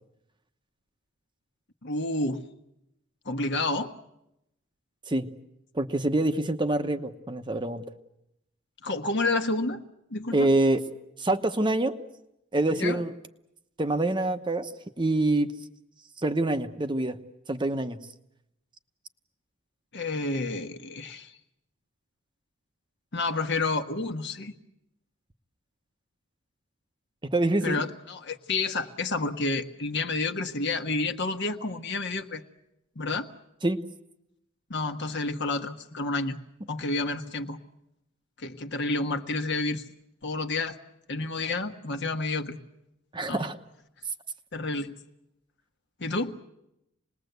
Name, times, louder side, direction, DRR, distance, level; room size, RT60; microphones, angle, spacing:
voice 1, 1.8-2.4 3.2-3.9 8.8-9.8 10.1-10.5 12.7-13.0 19.9-21.3 23.1-24.5 27.6-32.4 32.9-33.3 34.7-36.4 36.7-37.6 38.4-39.8 40.2-40.8 41.1-42.6 43.3-43.4 44.5-44.9 46.0-46.4, left 3 dB, 55° left, 6 dB, 1.4 m, -29 dB
voice 2, 5.7-7.8 10.3-10.8 11.2-11.9 12.5-13.1 13.8-14.7 15.0-15.5 16.2-17.2 17.5-18.0 27.2-27.8 33.6-33.8 43.1-43.6, right 2 dB, 20° right, 7 dB, 1.0 m, -25 dB
27.0 x 20.0 x 8.1 m, 0.87 s
head